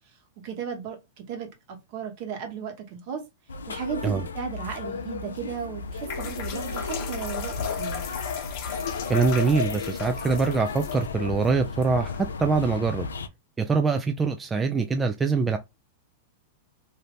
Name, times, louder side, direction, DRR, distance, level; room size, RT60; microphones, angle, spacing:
voice 1, 0.4-3.2 3.7-8.0, right 7 dB, 55° right, 1.1 m, -35 dB
sound 1, 3.5-13.3, left 4 dB, 90° left, 0.4 m, -34 dB
sound 2, 5.8-12.8, left 6 dB, 50° left, 0.9 m, -36 dB
voice 2, 9.1-13.1 13.6-15.6, right 4 dB, 15° right, 0.3 m, -24 dB
2.7 x 2.5 x 3.4 m
hypercardioid pair, 110°, 0 cm